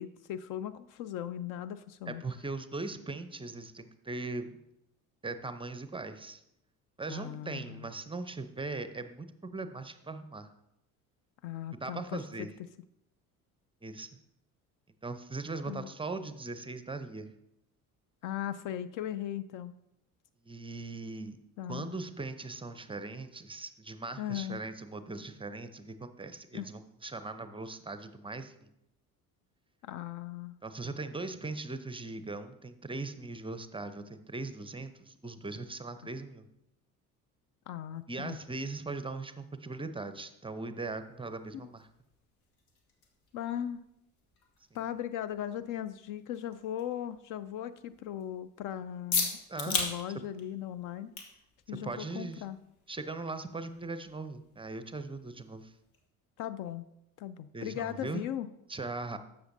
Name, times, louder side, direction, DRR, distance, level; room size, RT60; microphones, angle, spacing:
voice 1, 0.0-2.2 7.1-7.9 11.4-12.5 15.7-15.9 18.2-19.8 21.6-22.0 24.2-24.6 26.5-26.7 29.8-30.6 37.7-38.4 43.3-43.8 44.7-49.3 49.7-51.1 51.7-52.6 56.4-56.9 57.2-58.5, left 11 dB, 45° left, 15 dB, 0.5 m, -38 dB
voice 2, 2.1-4.6 5.2-6.4 7.0-10.5 11.7-12.5 13.8-14.1 15.0-17.3 20.4-21.4 21.7-28.7 30.6-36.4 38.1-41.9 49.5-49.8 51.8-52.4 52.9-55.7 57.5-58.2 58.7-59.2, right 3 dB, 10° right, 10 dB, 0.6 m, -39 dB
sound 1, 40.8-56.1, left 4 dB, 70° left, 1.6 m, -42 dB
12.5 x 7.6 x 2.7 m, 0.83 s
figure-of-eight pair, 55°, 44 cm